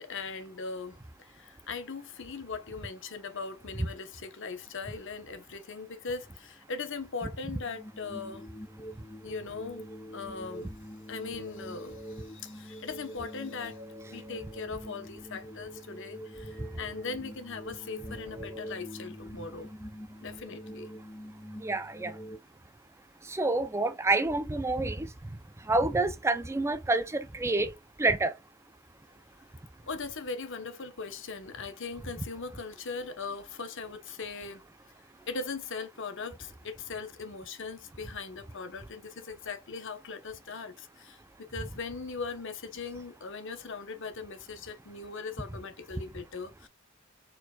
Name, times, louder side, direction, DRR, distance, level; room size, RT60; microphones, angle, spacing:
voice 1, 0.0-8.5 9.2-9.9 10.1-10.7 11.1-13.8 14.1-19.7 20.2-20.9 29.9-34.6 35.3-46.7, left 4 dB, 60° left, 0.9 m, -39 dB
sound 1, 7.5-22.4, equal, 20° left, 2.3 m, -45 dB
voice 2, 21.6-22.1 23.3-25.1 25.7-27.7 28.0-28.3, right 2 dB, 15° right, 0.4 m, -28 dB
4.4 x 4.2 x 2.2 m
head